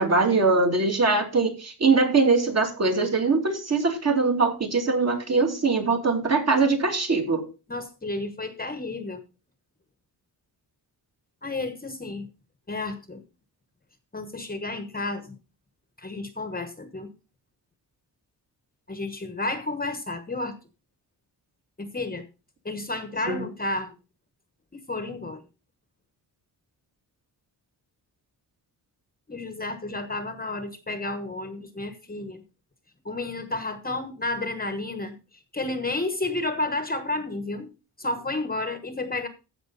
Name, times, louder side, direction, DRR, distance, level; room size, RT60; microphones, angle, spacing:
voice 1, 0.0-7.5 23.3-23.4, right 3 dB, 40° right, 3 dB, 2.8 m, -22 dB
voice 2, 7.7-9.2 11.4-12.3 12.7-13.2 14.1-15.4 16.0-17.1 18.9-20.5 21.8-22.2 22.6-23.9 24.7-25.4 29.3-32.4 33.0-35.1 35.5-37.7 38.0-39.3, left 2 dB, 20° left, 9 dB, 1.2 m, -31 dB
15.0 x 6.1 x 4.0 m, 0.31 s
wide cardioid pair, 150°, 40 cm